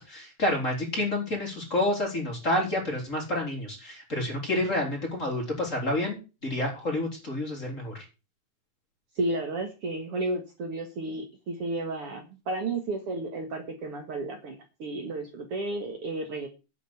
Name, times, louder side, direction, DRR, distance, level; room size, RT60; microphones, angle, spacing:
voice 1, 0.0-8.0, left 1 dB, 25° left, 0 dB, 4.6 m, -29 dB
voice 2, 9.2-16.5, right 2 dB, 55° right, 4 dB, 2.4 m, -32 dB
10.5 x 5.8 x 8.3 m, 0.30 s
omnidirectional pair, 3.4 m